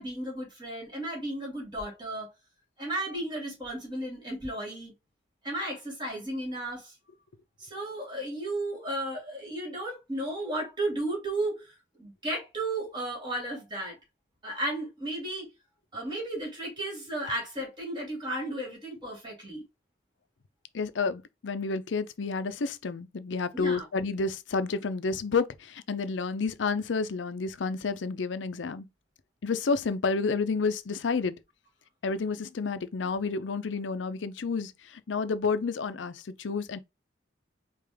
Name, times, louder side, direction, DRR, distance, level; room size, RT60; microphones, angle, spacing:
voice 1, 0.0-2.3 2.8-4.9 5.4-6.9 7.6-14.0 14.4-15.5 15.9-19.6 23.5-23.9, right 1 dB, 25° right, 2.4 m, -34 dB
voice 2, 20.7-28.9 29.4-31.4 32.0-36.8, left 4 dB, 85° left, 0.5 m, -30 dB
4.9 x 2.4 x 3.4 m
head